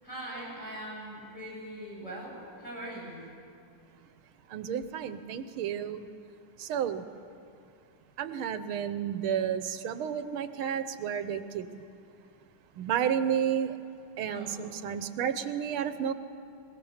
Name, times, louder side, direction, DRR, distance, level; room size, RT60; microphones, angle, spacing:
voice 1, 0.0-3.2 14.3-14.7, right 1 dB, 35° left, -4 dB, 8.6 m, -41 dB
voice 2, 4.5-6.1 6.6-7.0 8.2-11.8 12.8-13.8 14.2-16.1, right 8 dB, 85° right, 11 dB, 1.6 m, -31 dB
22.5 x 19.5 x 7.1 m, 2.5 s
omnidirectional pair, 2.3 m